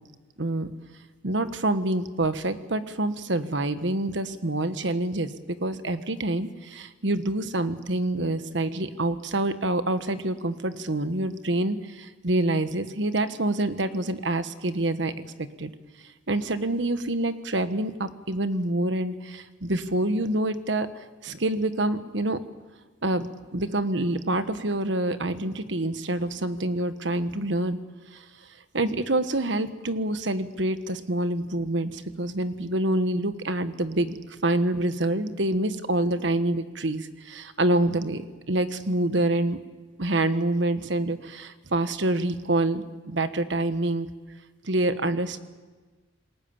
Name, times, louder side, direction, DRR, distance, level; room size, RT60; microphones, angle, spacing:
voice 1, 0.4-0.7 1.2-5.3 5.6-15.1 15.6-15.7 16.3-22.4 23.0-27.8 28.1-28.2 28.7-34.2 34.4-39.6 40.0-44.1 44.6-45.4, right 1 dB, 75° right, 11 dB, 1.3 m, -26 dB
27.5 x 20.0 x 7.2 m, 1.3 s
head